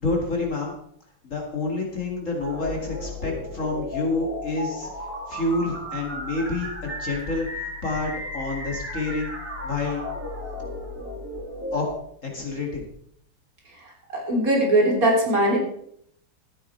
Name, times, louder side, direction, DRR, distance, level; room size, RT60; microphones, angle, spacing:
voice 1, 0.0-0.7 1.2-4.9 5.3-9.3 9.6-10.0 11.7-11.9 12.2-12.8, left 3 dB, 40° left, 0 dB, 2.3 m, -28 dB
sound 1, 2.4-11.9, left 1 dB, 5° right, 2.8 m, -34 dB
voice 2, 14.1-15.6, right 1 dB, 45° right, -2 dB, 3.7 m, -20 dB
14.0 x 8.8 x 4.4 m, 0.68 s
omnidirectional pair, 2.0 m